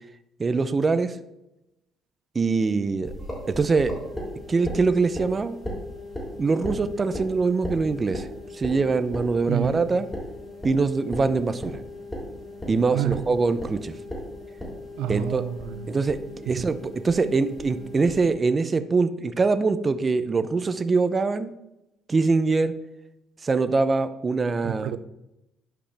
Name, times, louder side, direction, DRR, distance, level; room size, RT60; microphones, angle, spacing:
voice 1, 0.4-1.2 2.3-3.1 3.5-3.9 4.5-5.6 6.4-8.3 8.5-10.1 10.6-11.8 12.7-13.9 15.1-15.4 15.9-21.5 22.1-22.7 23.4-24.9, right 4 dB, 25° right, 0.6 m, -23 dB
sound 1, 3.0-18.3, left 1 dB, 15° left, 3.2 m, -37 dB
voice 2, 9.5-9.9 12.9-13.3 14.9-16.0 16.5-16.7 24.6-25.0, right 11 dB, 85° right, 0.4 m, -29 dB
11.5 x 5.1 x 3.4 m
cardioid pair, 110°, 0 cm